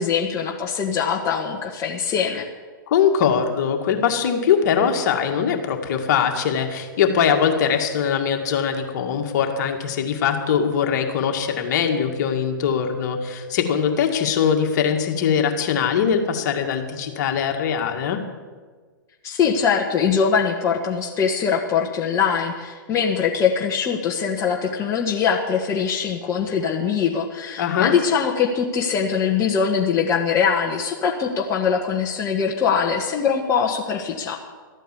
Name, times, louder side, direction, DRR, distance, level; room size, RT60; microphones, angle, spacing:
voice 1, 0.0-2.4 19.2-34.4, left 6 dB, 25° left, 0 dB, 1.4 m, -22 dB
voice 2, 2.9-18.2 27.6-27.9, left 7 dB, 55° left, 4 dB, 2.0 m, -21 dB
13.5 x 9.1 x 8.4 m, 1.5 s
hypercardioid pair, 125°, 11 cm